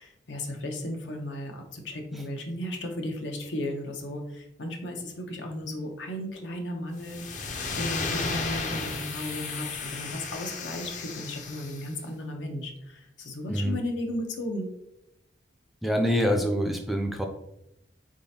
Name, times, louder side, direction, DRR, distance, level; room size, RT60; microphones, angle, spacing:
voice 1, 0.0-14.7, left 1 dB, 80° left, 3 dB, 0.8 m, -35 dB
sound 1, 7.0-11.9, left 4 dB, 45° left, 0.6 m, -34 dB
voice 2, 15.8-17.2, equal, ahead, 3 dB, 0.3 m, -25 dB
4.3 x 3.7 x 2.8 m, 0.83 s
head